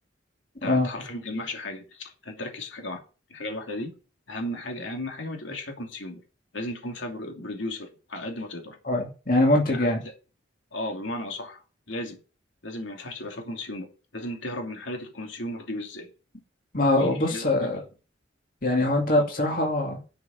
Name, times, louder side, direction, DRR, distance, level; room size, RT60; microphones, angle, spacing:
voice 1, 0.6-3.0 3.3-3.9 4.3-6.2 6.5-8.8 9.7-10.1 10.7-12.2 12.6-13.9 14.1-16.1 16.9-17.7 19.2-19.3, left 1 dB, 80° left, 2.7 m, -35 dB
voice 2, 8.9-10.0 16.7-17.8 18.6-20.0, left 1 dB, 45° left, 2.4 m, -23 dB
11.5 x 5.8 x 5.3 m
head